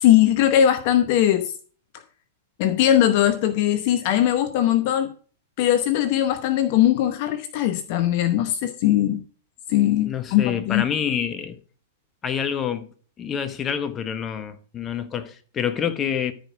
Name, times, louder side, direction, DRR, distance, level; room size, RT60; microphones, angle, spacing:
voice 1, 0.0-1.5 2.6-5.1 5.6-9.2 9.7-10.8, left 11 dB, 50° left, 0.8 m, -20 dB
voice 2, 10.0-11.6 12.2-12.9 13.2-16.3, left 8 dB, 25° left, 1.1 m, -27 dB
13.5 x 5.1 x 4.9 m
figure-of-eight pair, 100°, 0 cm